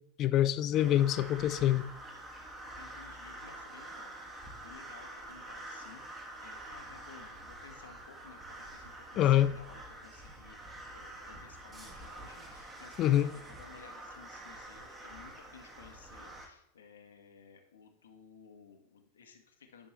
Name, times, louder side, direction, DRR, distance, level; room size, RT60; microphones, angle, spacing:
voice 1, 0.2-1.9 9.2-9.5 13.0-13.3, left 12 dB, 35° left, 0.4 m, -25 dB
sound 1, 0.7-16.5, right 1 dB, 15° right, 1.4 m, -47 dB
voice 2, 2.7-4.1 4.6-10.6 10.9-13.3 13.6-19.9, left 6 dB, 65° left, 1.2 m, -56 dB
11.0 x 6.0 x 3.1 m
figure-of-eight pair, 90°, 0 cm